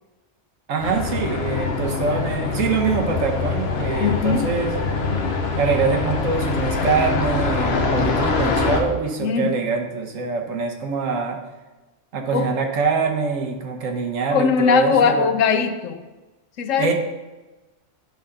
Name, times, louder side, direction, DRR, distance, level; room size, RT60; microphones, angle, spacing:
voice 1, 0.7-4.8 5.6-11.4 12.1-15.3 16.8-16.9, right 5 dB, 80° right, 4 dB, 1.3 m, -24 dB
sound 1, 0.8-8.8, left 4 dB, 55° left, 1.1 m, -24 dB
voice 2, 4.0-4.5 9.2-9.6 12.3-12.5 14.3-16.0 16.6-16.9, left 6 dB, 85° left, 8 dB, 1.0 m, -20 dB
8.8 x 5.6 x 3.8 m, 1.1 s
omnidirectional pair, 1.3 m